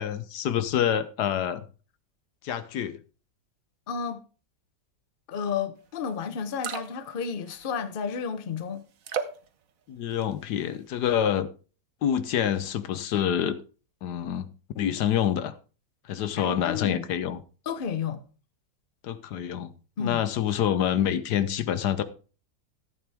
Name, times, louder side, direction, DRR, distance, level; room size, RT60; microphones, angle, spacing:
voice 1, 0.0-1.6 2.4-3.0 9.9-11.5 12.0-13.6 14.0-14.5 14.8-15.5 16.1-17.4 19.0-19.7 20.0-22.0, left 9 dB, 70° left, 1.3 m, -27 dB
voice 2, 3.9-4.2 5.3-8.9 16.4-17.0 17.7-18.2 20.0-20.2, left 6 dB, 40° left, 0.9 m, -32 dB
sound 1, 6.0-6.1 6.4-7.1 7.5-8.0 9.0-9.5 10.0-10.5 10.9-11.1, right 7 dB, 55° right, 1.2 m, -34 dB
14.0 x 8.8 x 3.5 m
omnidirectional pair, 1.9 m